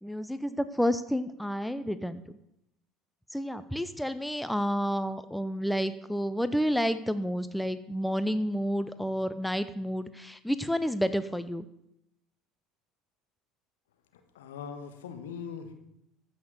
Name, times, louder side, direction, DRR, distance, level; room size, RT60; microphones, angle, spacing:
voice 1, 0.0-2.2 3.3-11.7, equal, 5° left, 12 dB, 0.8 m, -30 dB
voice 2, 14.3-15.7, left 6 dB, 70° left, 7 dB, 1.5 m, -40 dB
14.5 x 6.6 x 6.8 m, 0.81 s
figure-of-eight pair, 65°, 0 cm